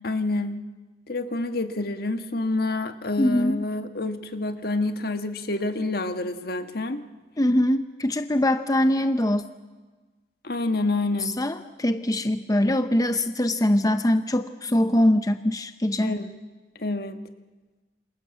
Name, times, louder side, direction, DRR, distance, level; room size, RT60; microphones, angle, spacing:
voice 1, 0.0-0.6 1.1-7.0 10.4-11.4 16.0-16.3 16.8-17.2, left 2 dB, 60° left, 8 dB, 1.5 m, -28 dB
voice 2, 3.2-3.6 7.4-9.4 11.2-16.2, left 1 dB, 20° left, 9 dB, 0.8 m, -23 dB
28.5 x 27.0 x 7.6 m, 1.3 s
head